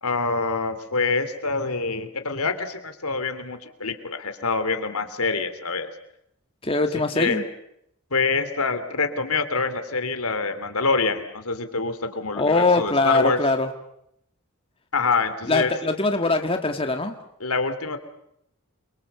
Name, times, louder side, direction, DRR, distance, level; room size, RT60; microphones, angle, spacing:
voice 1, 0.0-5.9 7.1-7.5 8.1-13.4 14.9-15.7 17.4-18.0, left 4 dB, 80° left, 10 dB, 3.0 m, -25 dB
voice 2, 6.6-7.4 12.3-13.7 15.5-17.2, left 3 dB, 25° left, 5 dB, 1.7 m, -22 dB
28.5 x 24.0 x 6.9 m, 0.76 s
head